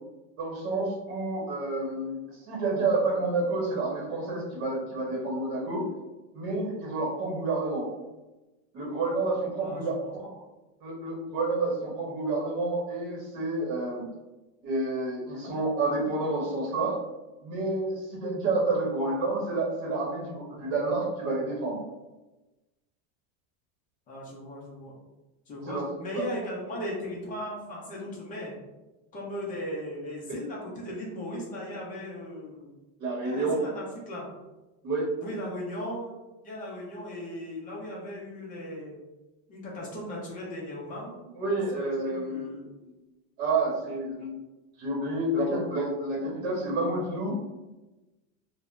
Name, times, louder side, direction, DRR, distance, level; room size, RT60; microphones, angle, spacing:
voice 1, 0.4-2.2 2.5-5.9 6.3-7.9 8.7-9.9 10.2-10.4 10.8-14.1 14.6-17.0 17.4-21.8 25.6-25.8 26.1-26.3 33.0-33.6 34.8-35.1 41.3-42.5 42.8-42.9 43.4-44.3 44.8-47.4, right 2 dB, 45° right, -3 dB, 1.0 m, -29 dB
voice 2, 9.6-10.1 24.1-24.9 25.5-28.5 29.1-32.7 33.2-34.3 35.2-36.1 36.4-39.0 39.5-41.3 41.7-42.7, left 1 dB, 20° left, -4 dB, 0.5 m, -37 dB
3.3 x 2.1 x 2.4 m, 1.1 s
supercardioid pair, 155°, 43 cm